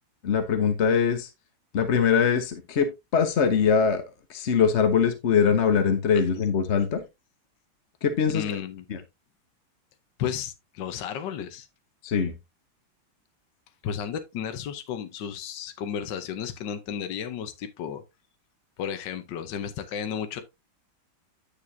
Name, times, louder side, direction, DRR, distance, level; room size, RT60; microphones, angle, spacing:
voice 1, 0.2-1.3 1.7-2.9 3.1-4.0 4.3-7.0 8.0-8.4 8.9-9.0 12.0-12.3, left 6 dB, 50° left, 0.9 m, -22 dB
voice 2, 8.3-8.8 10.2-11.7 13.8-18.0 18.8-20.4, left 8 dB, 70° left, 1.5 m, -33 dB
9.9 x 6.7 x 2.7 m
omnidirectional pair, 2.1 m